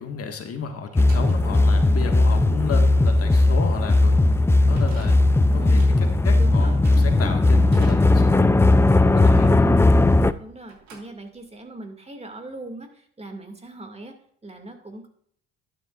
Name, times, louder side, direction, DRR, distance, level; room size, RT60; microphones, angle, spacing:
voice 1, 0.0-4.2 4.6-5.2 5.5-5.8 6.2-8.5 9.0-9.5, left 5 dB, 45° left, 4 dB, 1.7 m, -33 dB
sound 1, 0.9-10.4 10.6-11.7, right 4 dB, 60° right, 3.2 m, -48 dB
sound 2, 1.0-10.3, left 2 dB, 10° left, 0.5 m, -17 dB
voice 2, 5.6-5.9 6.4-6.8 9.6-9.8 10.4-14.1 14.4-15.1, right 2 dB, 20° right, 5 dB, 2.2 m, -40 dB
11.5 x 9.5 x 2.5 m, 0.65 s
hypercardioid pair, 65°, 32 cm